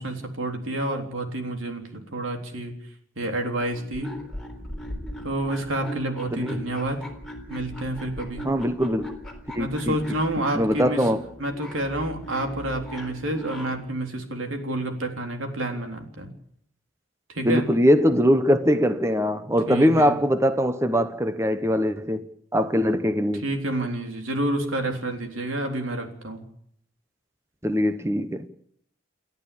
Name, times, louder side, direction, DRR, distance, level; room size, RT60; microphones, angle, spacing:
voice 1, 0.0-2.7 3.2-4.1 5.2-7.1 7.5-8.5 9.6-11.1 11.4-16.3 17.3-17.6 19.7-20.2 23.4-26.4, right 1 dB, 85° right, 3.6 m, -29 dB
sound 1, 3.7-13.9, equal, ahead, 3.7 m, -38 dB
voice 2, 8.4-9.2 9.5-9.9 10.5-11.2 17.4-22.3 22.5-23.4 27.6-28.5, equal, 15° right, 0.9 m, -22 dB
29.0 x 11.0 x 8.6 m
head